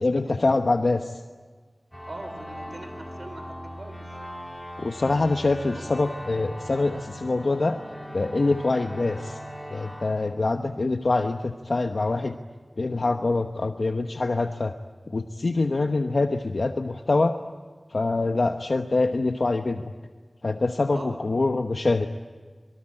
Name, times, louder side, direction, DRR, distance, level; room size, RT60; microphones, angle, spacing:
voice 1, 0.0-1.2 4.8-7.8 8.1-9.4 9.7-12.3 12.8-14.7 15.1-17.4 17.9-19.9 20.4-22.1, left 3 dB, 80° left, 6 dB, 1.0 m, -25 dB
sound 1, 1.9-11.2, equal, 10° left, 3.3 m, -40 dB
voice 2, 2.1-4.0 5.7-5.8 20.9-21.2, right 2 dB, 65° right, 8 dB, 4.3 m, -41 dB
26.5 x 24.0 x 8.9 m, 1.5 s
wide cardioid pair, 45°, 0 cm